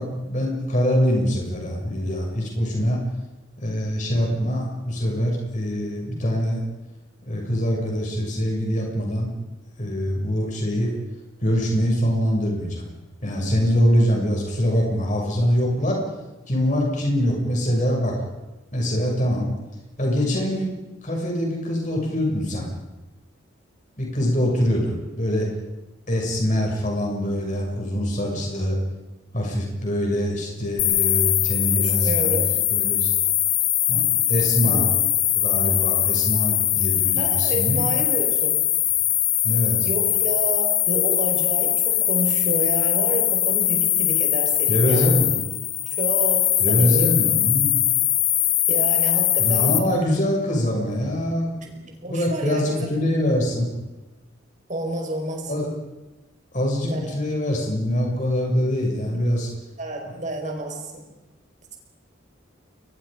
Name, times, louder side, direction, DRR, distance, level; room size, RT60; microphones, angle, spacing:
voice 1, 0.0-3.0 3.6-6.6 7.2-9.3 9.8-10.9 11.4-12.9 13.2-16.0 16.5-18.2 18.7-19.5 20.0-20.7 21.0-22.7 24.0-25.5 26.1-28.8 29.3-32.4 32.7-33.1 33.9-34.9 35.4-37.8 39.4-39.9 44.7-45.4 46.6-47.7 49.4-53.7 55.5-55.7 56.5-59.5 60.1-60.2, equal, 40° left, -1 dB, 7.2 m, -24 dB
sound 1, 30.8-49.8, left 12 dB, 65° left, 2.2 m, -21 dB
voice 2, 31.7-32.5 34.6-35.0 37.2-38.6 39.8-45.2 45.9-47.1 48.7-49.7 52.0-52.9 54.7-55.5 56.8-57.1 59.1-59.2 59.8-61.0, right 1 dB, 40° right, 2 dB, 5.7 m, -30 dB
30.0 x 23.5 x 5.3 m, 1.1 s
head